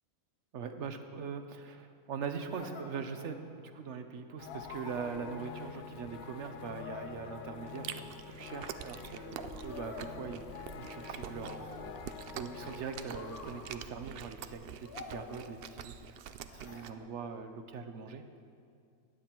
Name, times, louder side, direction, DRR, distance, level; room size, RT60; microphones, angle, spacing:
voice 1, 0.5-11.9 12.4-16.2 16.5-18.2, right 5 dB, 60° right, 8 dB, 1.0 m, -42 dB
sound 1, 2.5-3.7 4.5-5.9 6.7-8.1 9.4-11.0 11.4-12.4 13.1-14.0 14.8-16.0 16.5-16.9, left 4 dB, 85° left, 1.6 m, -49 dB
sound 2, 4.4-13.7, left 8 dB, 60° left, 0.7 m, -47 dB
Chewing mastication, 7.7-16.9, right 8 dB, 75° right, 0.5 m, -46 dB
15.5 x 10.0 x 4.5 m, 2.3 s
omnidirectional pair, 1.5 m